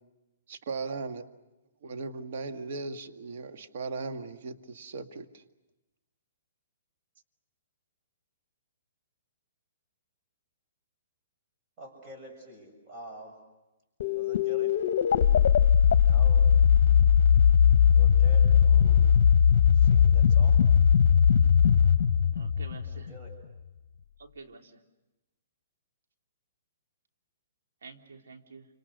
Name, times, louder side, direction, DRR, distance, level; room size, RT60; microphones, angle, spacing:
voice 1, 0.5-1.3 1.8-5.4, right 4 dB, 60° right, 7 dB, 1.7 m, -37 dB
voice 2, 11.8-13.4 14.1-14.8 16.0-16.5 17.9-19.2 19.7-20.6 22.9-23.4, right 1 dB, 25° right, 2 dB, 6.9 m, -47 dB
sound 1, 14.0-23.3, left 8 dB, 60° left, 1.0 m, -20 dB
voice 3, 22.3-23.1 24.2-24.8 27.8-28.7, right 4 dB, 85° right, 4 dB, 3.2 m, -48 dB
29.0 x 26.5 x 6.5 m, 1.0 s
hypercardioid pair, 155°, 0 cm